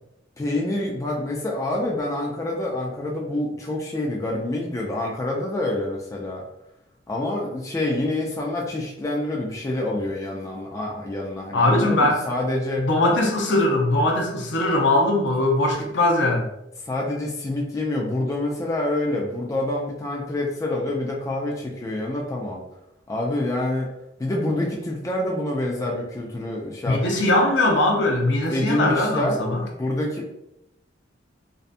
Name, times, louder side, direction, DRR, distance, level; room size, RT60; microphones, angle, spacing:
voice 1, 0.4-6.4 7.1-12.9 16.8-22.6 23.1-23.9 24.2-27.3 28.5-29.4 29.8-30.3, left 1 dB, 15° left, -2 dB, 0.3 m, -27 dB
voice 2, 11.5-12.2 12.8-16.5 26.9-29.6, left 1 dB, 65° left, 1 dB, 0.5 m, -20 dB
2.6 x 2.2 x 2.4 m, 0.85 s
head